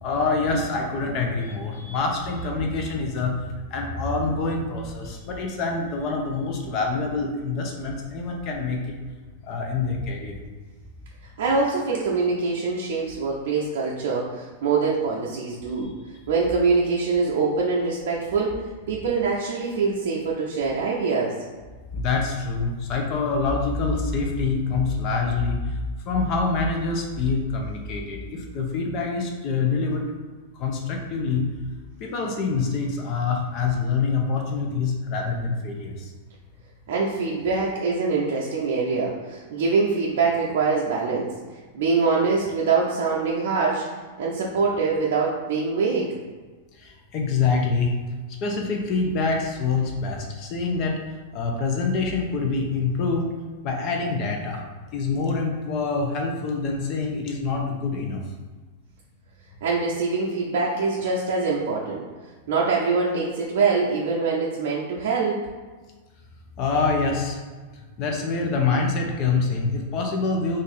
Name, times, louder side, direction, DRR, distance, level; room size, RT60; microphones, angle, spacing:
voice 1, 0.0-3.3 3.7-8.8 9.5-10.4 21.9-25.8 26.1-30.0 30.6-31.4 32.0-36.0 46.8-48.0 48.4-51.0 51.3-53.3 53.6-54.6 54.9-58.2 66.6-67.4 68.0-70.6, left 4 dB, 45° left, 1 dB, 0.7 m, -25 dB
voice 2, 11.2-15.9 16.3-18.6 18.9-21.3 36.9-41.3 41.7-43.8 44.2-46.2 59.6-62.0 62.5-65.4, right 4 dB, 65° right, -4 dB, 0.5 m, -24 dB
2.6 x 2.5 x 4.1 m, 1.3 s
hypercardioid pair, 105°, 0 cm